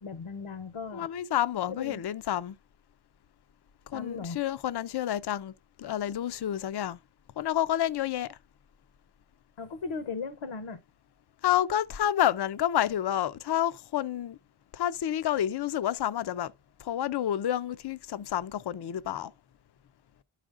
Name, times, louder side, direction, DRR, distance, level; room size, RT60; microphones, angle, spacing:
voice 1, 0.0-1.1 1.7-2.0 3.9-4.4 9.6-10.8, left 5 dB, 70° left, 0.8 m, -37 dB
voice 2, 0.9-2.6 3.9-5.5 5.8-7.0 7.4-8.4 11.4-14.4 14.7-16.5 16.8-19.3, left 11 dB, 55° left, 0.5 m, -29 dB
12.5 x 5.0 x 2.4 m
wide cardioid pair, 70°, 50 cm